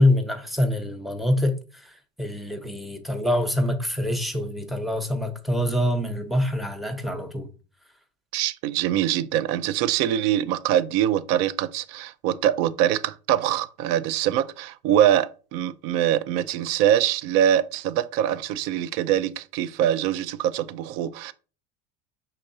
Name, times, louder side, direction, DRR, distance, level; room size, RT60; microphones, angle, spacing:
voice 1, 0.0-1.9 2.2-7.5, left 1 dB, ahead, 0.8 m, -25 dB
voice 2, 8.3-21.3, right 11 dB, 65° right, 0.4 m, -23 dB
5.2 x 3.8 x 2.7 m
supercardioid pair, 100°, 21 cm